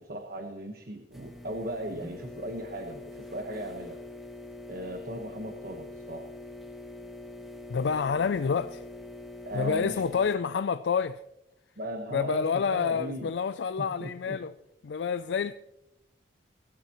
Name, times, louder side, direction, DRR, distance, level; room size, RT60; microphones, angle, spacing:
voice 1, 0.0-4.0 4.7-6.3 9.4-10.2 11.8-13.3 13.8-14.4, right 1 dB, 55° right, 1.2 m, -37 dB
sound 1, 1.1-10.3, left 2 dB, ahead, 1.4 m, -44 dB
voice 2, 7.7-8.8 9.5-11.2 12.1-14.5 14.8-15.5, left 6 dB, 70° left, 0.4 m, -28 dB
22.5 x 12.5 x 3.0 m
head